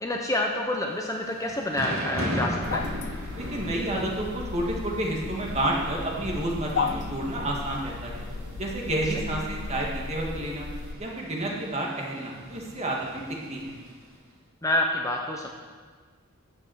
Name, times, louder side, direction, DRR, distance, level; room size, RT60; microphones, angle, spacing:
voice 1, 0.0-2.9 14.6-15.5, left 1 dB, 15° left, 1 dB, 0.8 m, -28 dB
Thunder / Rain, 1.0-14.1, equal, 70° right, 3.1 m, -38 dB
sound 1, 2.6-10.9, left 5 dB, 55° left, 0.5 m, -35 dB
voice 2, 3.4-8.2 8.6-10.7 11.0-13.2 13.5-13.7, right 1 dB, 30° right, -2 dB, 2.1 m, -30 dB
9.6 x 7.5 x 8.0 m, 1.5 s
head